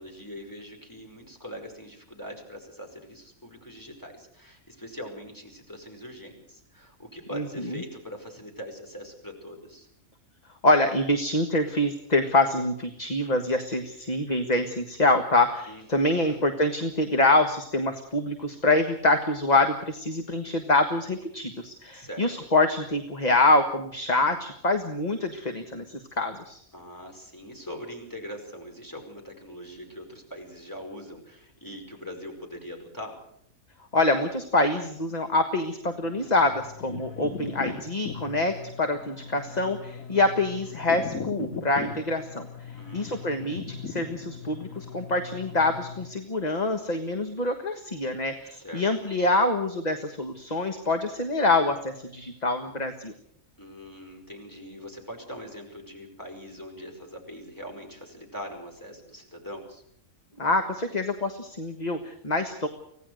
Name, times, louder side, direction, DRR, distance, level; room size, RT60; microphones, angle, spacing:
voice 1, 0.0-9.9 15.7-16.4 21.9-22.5 26.7-33.2 42.8-43.5 48.5-48.8 53.6-59.8, equal, 15° left, 2 dB, 5.1 m, -42 dB
voice 2, 10.6-26.6 33.9-42.5 42.9-53.1 60.4-62.7, left 2 dB, 30° left, 6 dB, 1.5 m, -25 dB
sound 1, 36.0-46.1, left 5 dB, 75° left, 2.2 m, -39 dB
25.0 x 17.0 x 6.4 m, 0.72 s
omnidirectional pair, 1.5 m